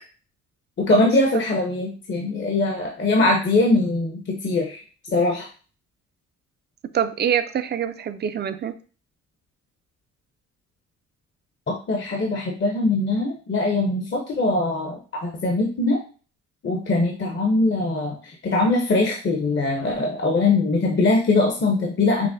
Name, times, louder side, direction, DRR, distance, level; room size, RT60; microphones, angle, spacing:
voice 1, 0.8-4.8 5.1-5.5 11.7-16.0 16.6-22.3, left 2 dB, 40° left, 0 dB, 0.8 m, -22 dB
voice 2, 6.9-8.8, right 8 dB, 35° right, 11 dB, 0.4 m, -25 dB
5.9 x 2.1 x 2.6 m, 0.38 s
cardioid pair, 90°, 30 cm